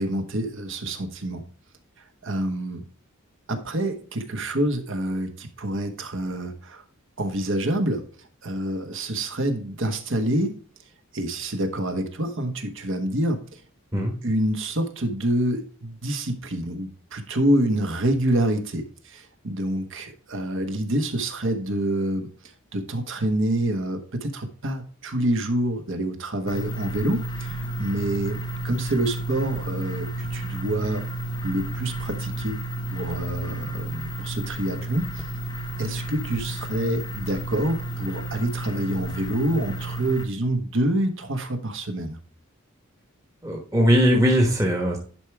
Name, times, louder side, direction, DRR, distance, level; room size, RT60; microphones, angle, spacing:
voice 1, 0.0-1.4 2.2-2.8 3.5-6.8 7.2-8.0 8.4-10.6 11.1-13.6 14.2-22.3 22.7-31.0 31.4-32.6 32.9-35.3 35.8-42.2, right 1 dB, 60° right, 6 dB, 1.2 m, -27 dB
sound 1, 26.5-40.3, right 2 dB, 20° left, 0.8 m, -32 dB
voice 2, 43.4-45.0, equal, 15° right, 0 dB, 1.2 m, -20 dB
10.5 x 4.8 x 3.3 m, 0.42 s
head